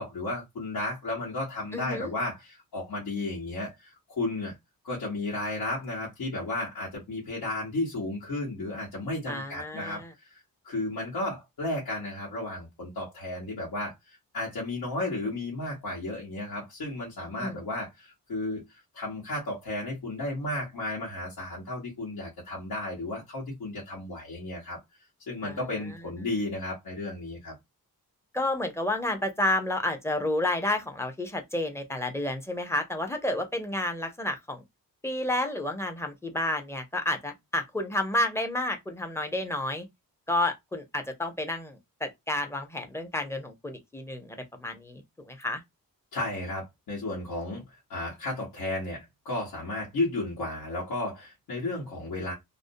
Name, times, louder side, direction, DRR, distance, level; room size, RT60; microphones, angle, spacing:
voice 1, 0.0-4.5 4.8-10.0 10.3-13.9 14.3-24.8 25.3-27.5 46.1-47.6 47.9-52.3, left 2 dB, 75° left, 1.2 m, -33 dB
voice 2, 1.7-2.1 9.3-10.1 17.4-17.5 25.4-25.6 28.3-34.6 35.0-39.9 40.3-45.6, left 1 dB, 5° left, 0.6 m, -30 dB
2.6 x 2.1 x 2.5 m
wide cardioid pair, 120°, 37 cm